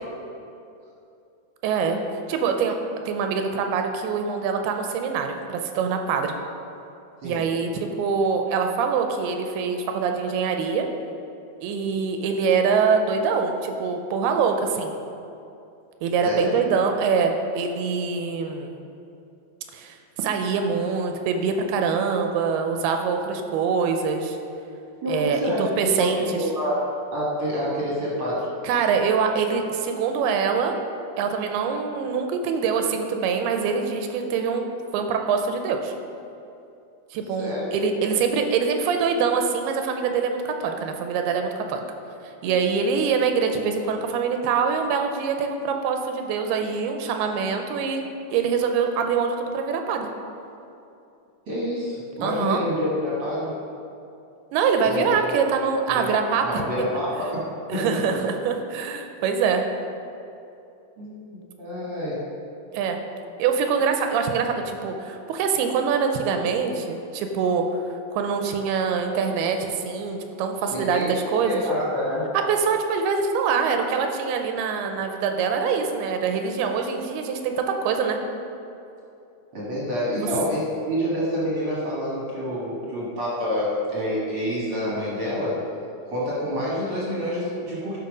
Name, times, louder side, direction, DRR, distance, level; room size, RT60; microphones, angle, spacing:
voice 1, 1.6-2.0 2.3-2.8 3.1-6.3 7.2-10.9 11.6-14.9 16.0-18.7 19.7-24.4 25.1-26.2 28.6-30.7 31.2-34.7 34.9-35.9 37.1-41.8 42.4-48.0 48.3-50.1 52.2-52.6 54.5-56.4 57.7-59.7 62.7-63.0 63.4-67.8 68.1-71.6 72.5-78.2, right 5 dB, 90° right, 5 dB, 2.7 m, -24 dB
voice 2, 16.2-16.5 25.0-25.6 25.8-26.8 27.1-28.5 37.4-37.7 51.5-53.6 54.8-55.4 55.9-56.1 56.4-57.9 61.0-62.2 70.7-71.1 71.4-72.3 79.5-85.6 86.1-88.0, equal, 50° right, -6 dB, 1.6 m, -27 dB
11.5 x 5.4 x 5.2 m, 2.7 s
omnidirectional pair, 4.5 m